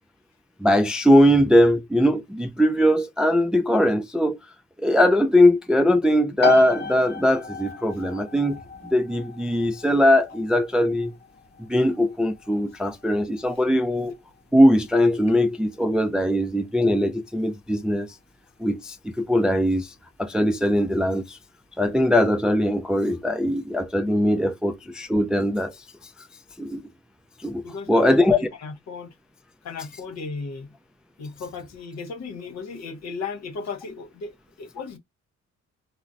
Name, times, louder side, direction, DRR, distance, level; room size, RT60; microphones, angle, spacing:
voice 1, 0.6-4.4 4.8-11.1 11.7-14.1 14.5-18.1 18.6-19.9 20.2-21.4 21.8-25.7 26.6-26.8 27.4-27.6 27.9-28.4, left 1 dB, 5° right, 0.3 m, -20 dB
sound 1, 6.4-20.9, left 5 dB, 35° left, 0.7 m, -36 dB
voice 2, 27.6-29.1 29.6-30.7 31.2-34.3 34.6-35.0, left 4 dB, 60° left, 0.9 m, -35 dB
3.8 x 2.0 x 2.5 m
cardioid pair, 90°, 30 cm